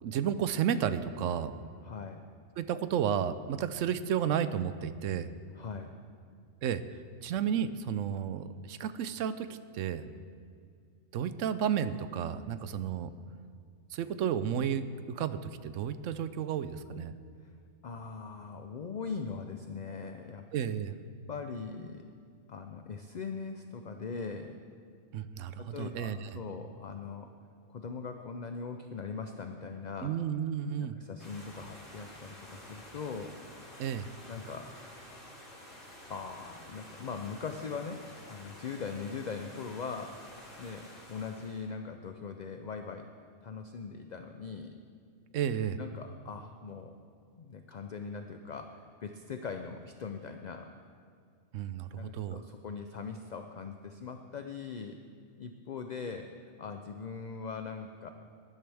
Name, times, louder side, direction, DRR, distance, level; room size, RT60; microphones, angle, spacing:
voice 1, 0.0-1.5 2.6-5.3 6.6-6.8 7.2-10.0 11.1-13.1 13.9-17.1 20.5-20.9 25.1-26.3 30.0-31.0 33.8-34.1 45.3-45.8 51.5-52.4, right 8 dB, 80° right, 13 dB, 1.0 m, -32 dB
voice 2, 1.8-2.2 5.5-6.0 17.4-17.5 17.8-20.5 21.3-22.0 22.5-24.6 25.6-27.3 27.7-30.2 30.8-33.3 34.3-34.9 36.1-40.2 40.6-43.1 43.4-44.7 45.8-47.0 47.4-50.7 52.0-55.0 55.4-58.1, left 5 dB, 50° left, 6 dB, 0.5 m, -41 dB
sound 1, 31.2-41.7, left 1 dB, 90° left, 4.3 m, -50 dB
19.0 x 11.0 x 3.4 m, 2.3 s
omnidirectional pair, 1.3 m